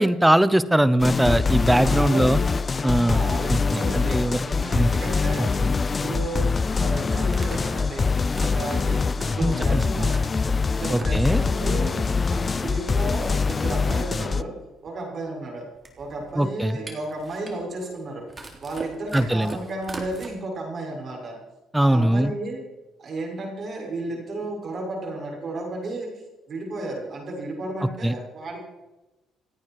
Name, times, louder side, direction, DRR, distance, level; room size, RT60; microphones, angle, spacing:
voice 1, 0.0-2.4 2.8-4.4 4.7-4.9 5.6-5.7 9.4-10.1 10.9-11.4 16.4-16.8 19.1-19.6 21.7-22.3 27.8-28.1, right 1 dB, 5° right, 14 dB, 0.9 m, -21 dB
sound 1, 1.0-14.4, left 4 dB, 30° left, 0.5 m, -24 dB
voice 2, 1.7-2.6 3.0-6.5 6.8-8.1 8.4-10.1 10.6-12.0 12.3-14.5 14.8-15.6 16.0-18.3 18.6-21.4 21.8-22.6 23.0-26.1 26.5-28.6, right 2 dB, 45° right, 0 dB, 7.0 m, -33 dB
sound 2, 7.3-10.6 10.9-11.6 12.1-12.7 13.0-13.1 13.3-20.3, right 2 dB, 25° right, 3.6 m, -41 dB
28.0 x 9.4 x 4.9 m, 1.1 s
cardioid pair, 105°, 0 cm